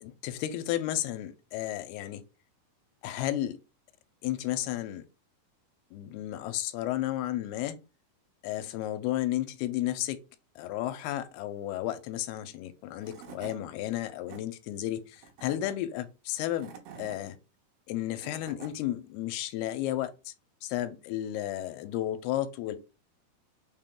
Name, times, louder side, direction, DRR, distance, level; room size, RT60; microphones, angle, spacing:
voice 1, 0.0-2.2 3.0-3.6 4.2-5.1 5.9-7.8 8.4-10.2 10.6-16.7 17.0-17.4 17.9-20.3 20.6-22.8, left 13 dB, 85° left, 2.5 m, -33 dB
Tools / Wood, 12.7-12.8 13.0-13.6 14.0-14.4 15.2-15.7 16.4-17.2 17.9-18.7, right 7 dB, 85° right, 2.9 m, -47 dB
6.2 x 2.2 x 3.7 m
omnidirectional pair, 4.4 m